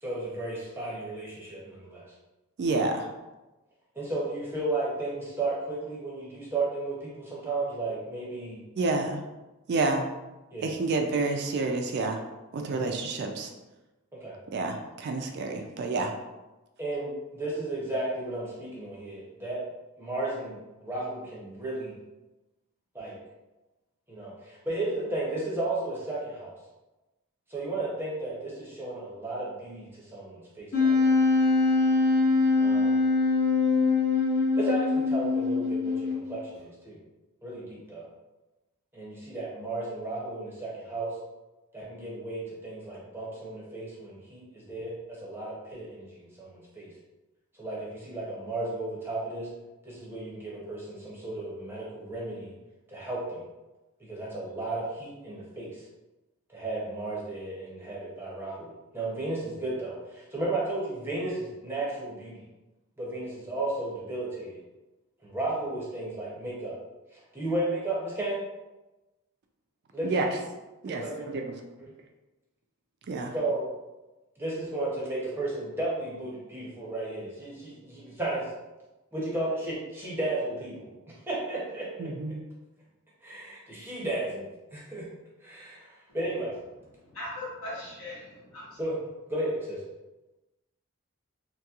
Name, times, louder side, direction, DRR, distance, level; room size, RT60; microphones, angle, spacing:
voice 1, 0.0-2.0 4.0-8.6 10.5-10.7 12.7-12.9 14.1-14.4 16.8-19.6 20.0-22.0 22.9-23.2 24.1-26.5 27.5-31.1 32.6-33.0 34.6-37.0 37.4-38.1 38.9-41.2 41.7-46.9 47.6-49.5 49.8-52.5 52.9-53.4 54.0-55.8 56.5-62.3 63.0-64.6 65.2-66.8 67.3-68.4 69.9-70.3 70.9-71.1 73.3-73.7 74.4-78.5 79.1-82.1 83.2-85.1 85.4-86.6 88.8-89.0 89.3-89.8, right 2 dB, 10° right, -6 dB, 0.6 m, -34 dB
voice 2, 2.6-3.1 8.8-9.2 9.7-10.0 10.6-12.2 12.5-13.5 14.5-16.1 70.0-70.3 70.8-71.5 73.1-73.3 82.0-82.4, right 3 dB, 50° right, 4 dB, 0.3 m, -29 dB
Wind instrument woodwind instrument, 30.7-36.4, left 3 dB, 45° left, 0.7 m, -23 dB
voice 3, 87.0-88.8, left 1 dB, 75° left, -6 dB, 1.2 m, -39 dB
2.9 x 2.9 x 2.3 m, 1.1 s
head